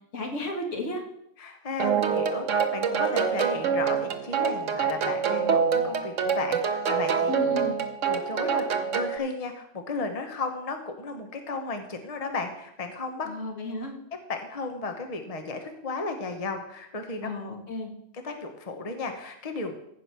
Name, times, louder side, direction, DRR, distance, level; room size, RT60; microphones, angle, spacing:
voice 1, 0.1-1.0 7.3-7.8 13.3-13.9 17.2-17.9, left 2 dB, 75° left, 2 dB, 2.2 m, -33 dB
voice 2, 1.4-7.4 8.0-13.3 14.3-17.3 18.2-19.7, left 3 dB, 30° left, 5 dB, 1.1 m, -34 dB
sound 1, 1.8-9.2, right 6 dB, 75° right, 1.3 m, -26 dB
15.0 x 5.0 x 6.0 m, 0.78 s
omnidirectional pair, 1.3 m